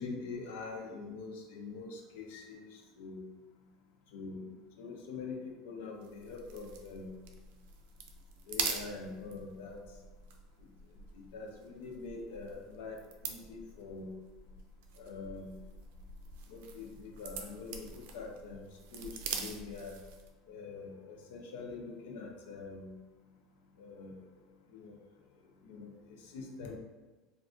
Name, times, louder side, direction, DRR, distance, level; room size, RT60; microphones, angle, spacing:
voice 1, 0.0-3.2 4.1-4.4 4.8-7.2 8.5-9.8 11.1-14.1 15.0-15.5 16.5-20.0 20.5-22.9 23.8-24.2 24.7-25.0 25.6-26.8, left 4 dB, 85° left, 1 dB, 0.6 m, -44 dB
sound 1, 6.0-20.4, right 6 dB, 80° right, 0.4 m, -44 dB
2.5 x 2.3 x 3.6 m, 1.2 s
cardioid pair, 155°, 0 cm